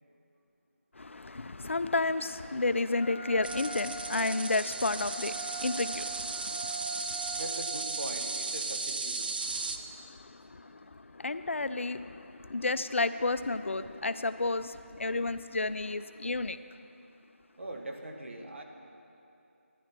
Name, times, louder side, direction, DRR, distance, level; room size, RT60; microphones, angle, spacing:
voice 1, 1.0-7.4 9.5-16.6, left 3 dB, 60° left, 12 dB, 0.5 m, -32 dB
Wind instrument woodwind instrument, 3.0-8.3, right 4 dB, 10° left, 2.4 m, -42 dB
sound 1, 3.4-9.8, right 3 dB, 40° right, 0.6 m, -36 dB
voice 2, 7.3-9.3 17.6-18.6, right 1 dB, 60° right, 2 dB, 1.5 m, -41 dB
13.5 x 10.0 x 4.4 m, 2.7 s
figure-of-eight pair, 165°, 7 cm